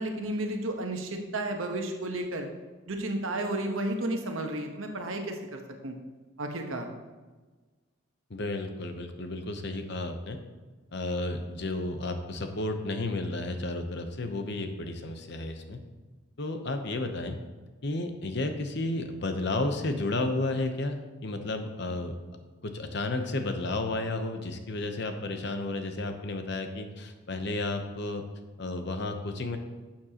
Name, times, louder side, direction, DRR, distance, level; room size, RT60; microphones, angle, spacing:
voice 1, 0.0-2.5 2.9-5.9 6.4-6.9, right 1 dB, 75° right, 4 dB, 1.1 m, -32 dB
voice 2, 8.3-10.4 10.9-15.8 16.4-17.4 17.8-22.2 22.6-28.2 28.6-29.6, left 2 dB, 55° left, 6 dB, 0.8 m, -32 dB
11.0 x 7.3 x 2.9 m, 1.3 s
head